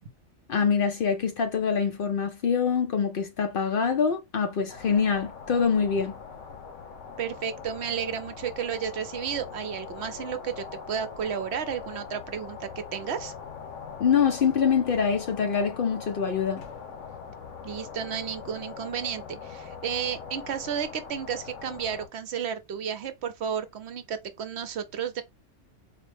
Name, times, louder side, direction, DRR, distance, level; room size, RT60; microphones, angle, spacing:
voice 1, 0.5-6.1 14.0-16.6, left 6 dB, 60° left, 0.6 m, -25 dB
sound 1, 4.7-22.1, left 6 dB, 85° left, 1.0 m, -42 dB
voice 2, 7.2-13.3 17.6-25.2, right 8 dB, 65° right, 0.8 m, -32 dB
4.2 x 2.1 x 3.2 m
omnidirectional pair, 1.3 m